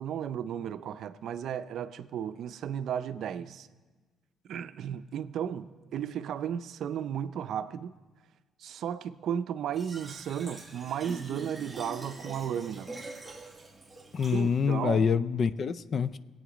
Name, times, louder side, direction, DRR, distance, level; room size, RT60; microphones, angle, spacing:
voice 1, 0.0-3.7 4.5-7.9 8.6-12.9 14.3-15.1, right 9 dB, 70° right, 0.5 m, -34 dB
Fill (with liquid), 9.7-14.7, right 2 dB, 10° right, 1.8 m, -44 dB
voice 2, 14.1-16.2, left 6 dB, 45° left, 0.4 m, -26 dB
21.0 x 8.7 x 5.0 m
cardioid pair, 120°, 0 cm